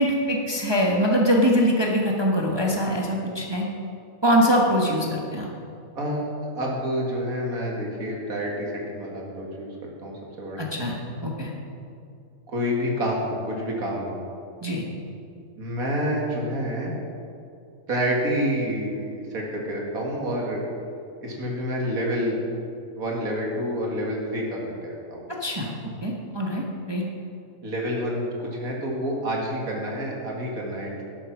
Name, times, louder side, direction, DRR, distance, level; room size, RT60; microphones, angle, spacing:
voice 1, 0.0-3.6 4.2-5.5 10.6-11.5 14.6-14.8 25.4-25.7 26.0-26.6 26.9-27.0, equal, 20° right, -2 dB, 1.2 m, -23 dB
voice 2, 6.0-10.6 12.5-14.2 15.6-16.9 17.9-20.6 21.2-22.4 22.9-25.3 27.6-31.0, equal, 85° right, -2 dB, 2.4 m, -28 dB
12.0 x 8.7 x 6.0 m, 2.6 s
omnidirectional pair, 1.4 m